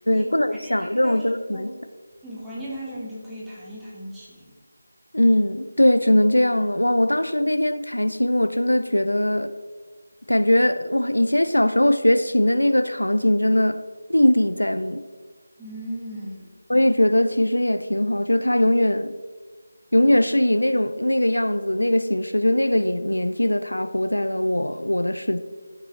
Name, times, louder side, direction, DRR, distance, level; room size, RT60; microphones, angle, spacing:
voice 1, 0.1-1.7 5.1-9.5 10.3-13.8 14.1-15.0 16.7-19.1 19.9-25.4, left 1 dB, 85° left, 11 dB, 0.5 m, -20 dB
voice 2, 0.6-1.7 2.2-4.5 15.6-16.5, equal, 5° right, -9 dB, 1.5 m, -37 dB
12.0 x 6.1 x 3.2 m, 1.5 s
figure-of-eight pair, 165°, 0 cm